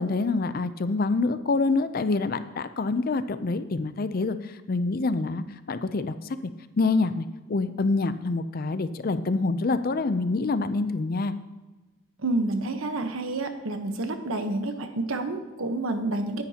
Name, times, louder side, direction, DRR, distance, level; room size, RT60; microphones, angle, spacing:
voice 1, 0.0-6.1 6.8-11.3, left 3 dB, 45° left, 12 dB, 0.5 m, -26 dB
voice 2, 12.2-16.4, right 2 dB, 70° right, 6 dB, 1.1 m, -29 dB
18.5 x 9.9 x 2.9 m, 1.2 s
head